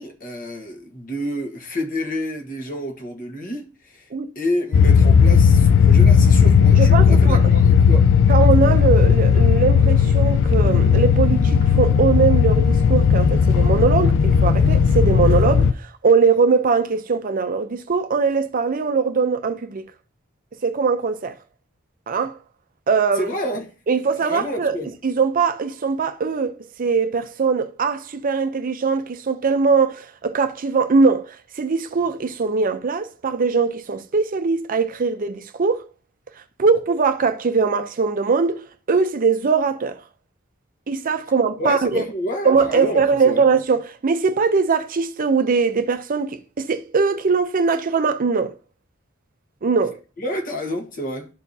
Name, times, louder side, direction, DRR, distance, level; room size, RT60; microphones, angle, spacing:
voice 1, 0.0-4.1 4.3-8.1 23.1-23.7 24.2-24.9 41.6-43.4 50.2-51.3, left 1 dB, 40° left, 1.3 m, -29 dB
sound 1, 4.7-15.7, left 6 dB, 60° left, 0.3 m, -15 dB
voice 2, 6.8-7.4 8.3-19.8 20.6-21.4 22.1-22.4 22.9-23.3 23.9-24.8 25.0-35.9 36.6-38.6 38.9-40.0 40.9-42.0 42.4-48.5 49.6-50.0, right 5 dB, 40° right, 0.5 m, -21 dB
12.0 x 4.5 x 2.7 m
head